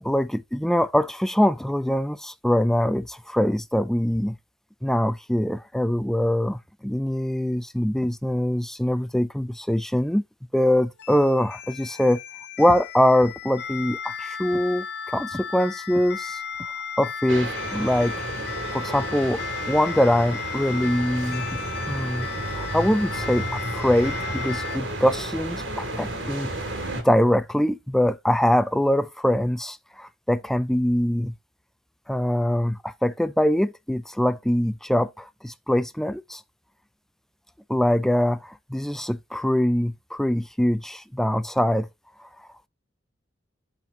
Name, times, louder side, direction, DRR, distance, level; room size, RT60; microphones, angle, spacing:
voice 1, 0.0-4.4 4.8-10.2 10.5-12.2 12.6-16.4 17.0-18.2 18.7-19.4 19.7-21.6 21.8-22.3 22.5-26.5 27.0-31.3 32.1-36.4 37.7-41.9, left 1 dB, ahead, 0.3 m, -23 dB
sound 1, 11.0-24.8, left 7 dB, 65° left, 0.7 m, -35 dB
sound 2, 17.3-27.0, right 1 dB, 90° right, 2.4 m, -32 dB
10.5 x 4.2 x 2.8 m
head